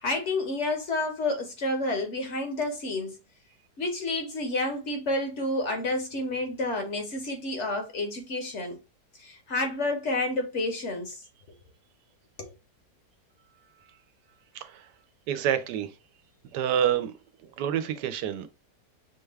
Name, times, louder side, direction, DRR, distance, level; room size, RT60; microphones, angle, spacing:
voice 1, 0.0-3.2 3.8-8.8 9.2-11.2 12.4-12.5, left 2 dB, 55° left, 1.0 m, -30 dB
voice 2, 14.5-14.9 15.3-16.0 16.4-17.1 17.4-18.5, right 9 dB, 85° right, 1.2 m, -28 dB
5.8 x 2.3 x 3.2 m
omnidirectional pair, 1.8 m